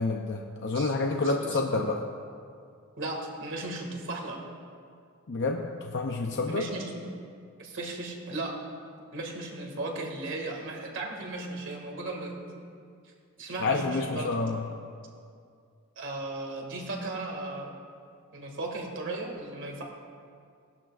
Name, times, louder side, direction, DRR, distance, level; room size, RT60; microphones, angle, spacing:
voice 1, 0.0-2.0 5.3-6.6 13.6-14.6, left 3 dB, 55° left, 2 dB, 0.6 m, -28 dB
voice 2, 1.2-1.6 3.0-4.4 6.3-7.0 7.6-8.5 9.1-12.3 13.4-14.5 16.0-17.7 18.3-19.8, right 2 dB, 60° right, 0 dB, 2.1 m, -36 dB
19.0 x 12.0 x 2.5 m, 2.3 s
head